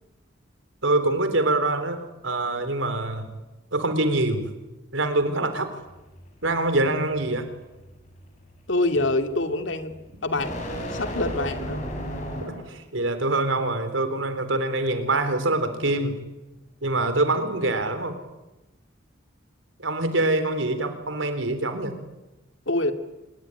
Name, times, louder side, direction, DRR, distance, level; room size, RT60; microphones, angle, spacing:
voice 1, 0.8-3.3 3.7-4.5 4.9-5.7 6.4-7.5 12.5-16.2 16.8-18.2 19.8-22.0, right 2 dB, 85° right, 9 dB, 4.0 m, -25 dB
sound 1, 5.9-12.8, equal, 40° left, 6.7 m, -36 dB
voice 2, 8.7-10.0 10.2-10.5 10.9-11.8 22.7-22.9, left 2 dB, 75° left, 8 dB, 2.4 m, -25 dB
26.0 x 21.5 x 9.9 m, 1.0 s
head